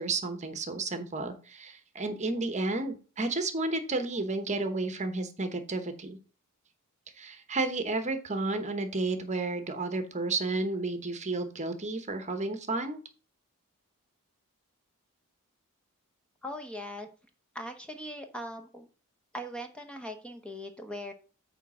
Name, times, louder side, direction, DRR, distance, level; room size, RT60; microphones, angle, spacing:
voice 1, 0.0-6.2 7.1-13.0, right 3 dB, 30° right, 8 dB, 1.0 m, -32 dB
voice 2, 16.4-17.1 17.5-18.9 19.3-21.1, equal, 5° left, 5 dB, 0.9 m, -40 dB
9.0 x 3.5 x 6.2 m, 0.36 s
head